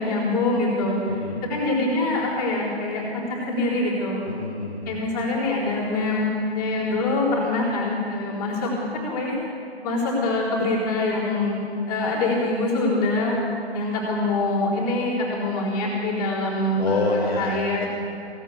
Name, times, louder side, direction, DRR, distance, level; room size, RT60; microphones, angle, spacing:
voice 1, 0.0-1.0 1.5-3.2 3.5-4.3 4.9-9.4 9.8-11.6 11.9-13.4 13.7-17.9, left 2 dB, 20° left, -7 dB, 4.0 m, -24 dB
voice 2, 1.1-1.4 4.2-5.0 16.7-17.8, left 2 dB, 40° left, -4 dB, 1.9 m, -27 dB
16.5 x 9.1 x 8.4 m, 2.5 s
figure-of-eight pair, 150°, 33 cm